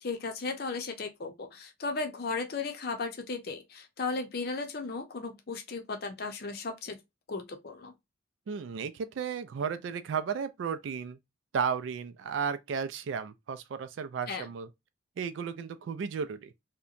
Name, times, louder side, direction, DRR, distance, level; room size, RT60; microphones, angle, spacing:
voice 1, 0.0-7.0 7.3-7.9 14.3-14.5, left 4 dB, 55° left, 0.6 m, -35 dB
voice 2, 8.5-11.2 11.5-14.7 15.2-16.5, right 6 dB, 85° right, 0.3 m, -34 dB
2.8 x 2.2 x 2.4 m
head